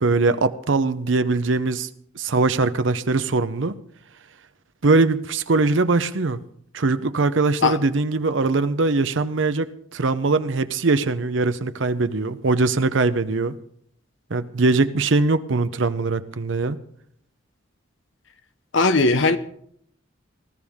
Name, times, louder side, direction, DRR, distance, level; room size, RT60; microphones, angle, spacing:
voice 1, 0.0-1.9 2.1-3.8 4.8-6.4 6.7-13.6 14.3-16.8, right 3 dB, 65° right, 0.7 m, -21 dB
voice 2, 18.7-19.4, left 3 dB, 65° left, 0.9 m, -18 dB
19.5 x 13.5 x 3.6 m
head